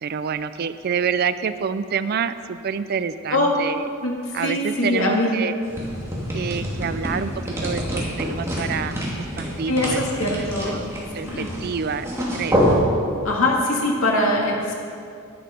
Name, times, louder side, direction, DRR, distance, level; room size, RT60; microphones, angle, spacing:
voice 1, 0.0-3.9 4.3-5.5 6.3-10.0 10.3-10.9 11.1-12.6, right 6 dB, 50° right, 12 dB, 0.4 m, -27 dB
voice 2, 4.4-5.3 9.7-10.8 11.2-11.5 13.2-14.8, left 1 dB, 75° left, -1 dB, 2.2 m, -22 dB
sound 1, 5.6-12.7, equal, 15° right, 2.4 m, -27 dB
11.0 x 10.5 x 5.1 m, 2.3 s
head